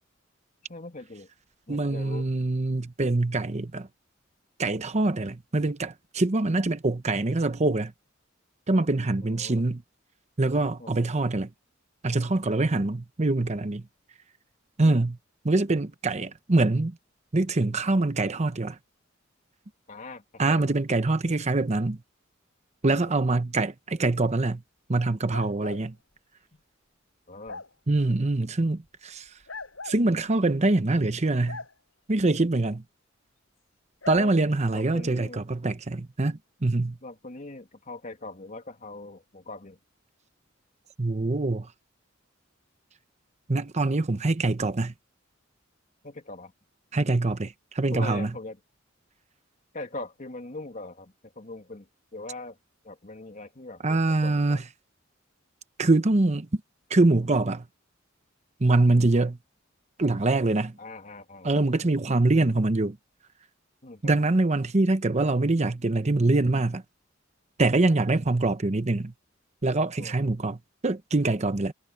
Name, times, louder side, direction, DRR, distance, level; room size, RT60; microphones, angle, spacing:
voice 1, 0.7-1.3 1.7-2.3 9.2-9.6 10.8-11.0 14.8-15.0 19.9-20.7 22.8-23.0 26.5-26.6 27.3-27.6 34.1-34.3 34.7-35.4 37.0-39.8 46.0-46.5 47.9-48.6 49.7-52.6 52.8-54.6 60.8-62.0 63.8-64.1 70.0-70.2, left 2 dB, 40° left, 2.7 m, -41 dB
voice 2, 1.7-3.9 4.6-7.9 8.7-9.8 10.4-11.5 12.0-13.8 14.8-15.2 15.4-17.0 17.3-18.8 20.4-22.0 22.8-24.6 24.9-25.9 27.9-29.3 29.8-31.6 32.1-32.8 34.1-37.0 41.0-41.7 43.5-44.9 46.9-48.3 53.8-54.6 55.8-56.6 56.9-57.7 58.6-59.4 60.0-60.8 61.4-63.0 64.0-66.8 67.6-69.1 69.6-70.6 70.8-71.7, right 2 dB, 35° right, 0.9 m, -24 dB
sound 1, 25.3-25.8 27.5-27.7 29.5-30.0 31.4-31.7 34.0-34.2, left 3 dB, 80° left, 6.2 m, -39 dB
head